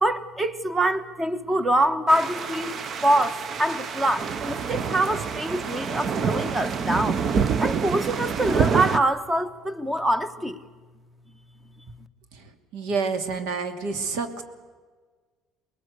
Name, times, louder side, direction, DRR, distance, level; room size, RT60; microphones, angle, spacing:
voice 1, 0.0-7.2 7.6-10.6, right 1 dB, 10° right, 1.3 m, -25 dB
sound 1, 2.1-9.0, right 6 dB, 35° right, 0.8 m, -27 dB
voice 2, 12.3-14.4, right 4 dB, 75° right, 2.8 m, -29 dB
24.5 x 21.0 x 8.2 m
cardioid pair, 130°, 0 cm